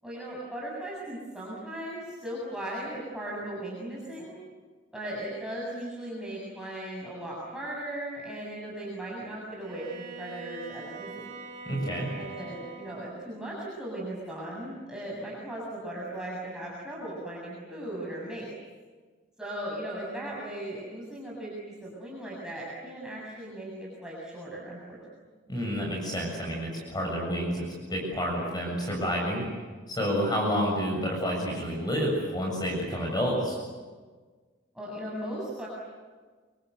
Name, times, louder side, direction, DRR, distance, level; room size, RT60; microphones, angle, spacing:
voice 1, 0.0-4.4 4.9-11.3 12.2-18.5 19.4-25.0 30.4-30.5 34.7-35.7, right 1 dB, 5° right, -5 dB, 7.4 m, -37 dB
Bowed string instrument, 9.6-13.3, right 4 dB, 45° right, 6.0 m, -43 dB
voice 2, 11.7-12.1 25.5-29.4 29.9-33.6, equal, 20° left, -1 dB, 7.2 m, -29 dB
29.0 x 24.5 x 8.2 m, 1.4 s
head